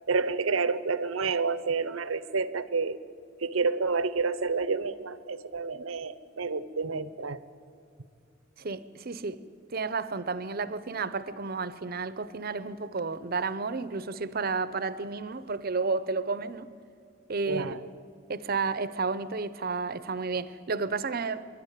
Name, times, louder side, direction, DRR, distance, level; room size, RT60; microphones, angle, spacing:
voice 1, 0.1-3.0 3.4-7.4 17.5-17.8, right 4 dB, 90° right, 0.9 m, -29 dB
voice 2, 8.6-9.4 9.7-16.7 17.3-17.7 18.3-21.5, right 4 dB, 50° right, 0.7 m, -31 dB
26.0 x 12.0 x 9.9 m
head